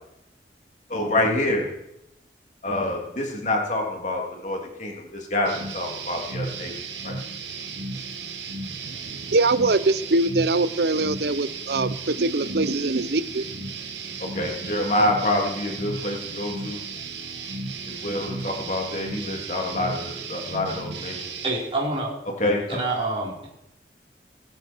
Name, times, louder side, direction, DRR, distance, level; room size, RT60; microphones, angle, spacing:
voice 1, 0.9-1.7 2.6-6.7 7.0-7.1 14.2-16.8 17.9-21.2 22.4-22.8, left 1 dB, 45° left, 0 dB, 3.1 m, -26 dB
sound 1, 5.4-21.5, right 4 dB, 85° right, 2.2 m, -35 dB
voice 2, 8.9-13.4, right 2 dB, 65° right, 14 dB, 0.8 m, -23 dB
voice 3, 21.4-22.2 22.7-23.5, right 2 dB, 30° right, -5 dB, 4.1 m, -27 dB
25.0 x 9.0 x 4.6 m, 0.83 s
head